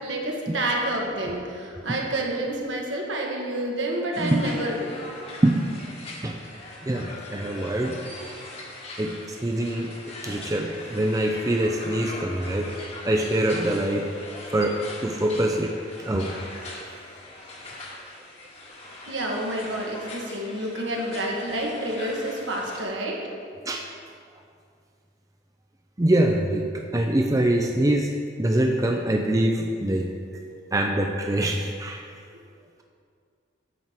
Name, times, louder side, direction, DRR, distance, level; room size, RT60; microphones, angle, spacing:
voice 1, 0.0-4.9 19.1-23.2, right 1 dB, 75° right, -1 dB, 1.6 m, -29 dB
sound 1, 4.1-22.8, left 2 dB, 35° left, 1.3 m, -41 dB
voice 2, 6.8-8.0 9.0-9.1 9.4-9.9 10.2-12.7 13.0-14.0 14.5-14.8 15.0-15.7 16.0-16.3 23.7-23.8 26.0-26.7 26.9-28.1 28.4-30.1 30.7-32.0, right 1 dB, 15° right, 2 dB, 0.4 m, -24 dB
10.0 x 4.5 x 7.4 m, 2.3 s
head